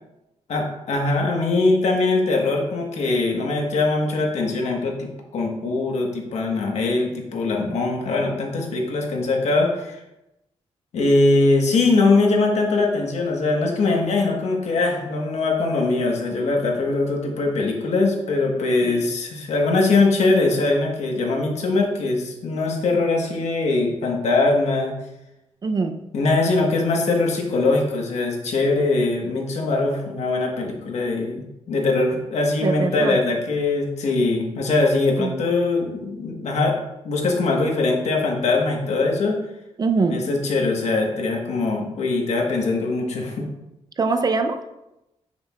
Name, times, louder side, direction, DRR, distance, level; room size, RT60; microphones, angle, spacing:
voice 1, 0.5-10.0 10.9-24.9 26.1-36.8 37.0-39.4 40.1-43.5, left 3 dB, 75° left, 0 dB, 1.4 m, -21 dB
voice 2, 25.6-26.0 32.6-33.2 35.2-35.3 39.8-40.2 44.0-44.6, right 4 dB, 35° right, 7 dB, 0.5 m, -22 dB
7.4 x 6.5 x 2.4 m, 0.91 s
cardioid pair, 120°, 11 cm